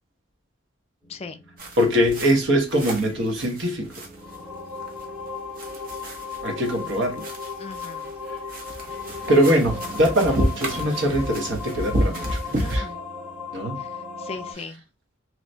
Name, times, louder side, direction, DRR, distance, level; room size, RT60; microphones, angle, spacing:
sound 1, 1.0-14.5, left 4 dB, 5° right, 0.9 m, -37 dB
sound 2, 1.6-12.8, equal, 45° right, 0.8 m, -31 dB
voice 1, 1.8-3.9 6.4-7.2 9.3-12.9 13.5-13.8, equal, 65° right, 1.0 m, -22 dB
voice 2, 7.6-8.1 12.5-13.0 13.8-13.9 14.2-14.8, left 4 dB, 30° left, 0.3 m, -38 dB
3.2 x 2.9 x 2.7 m
head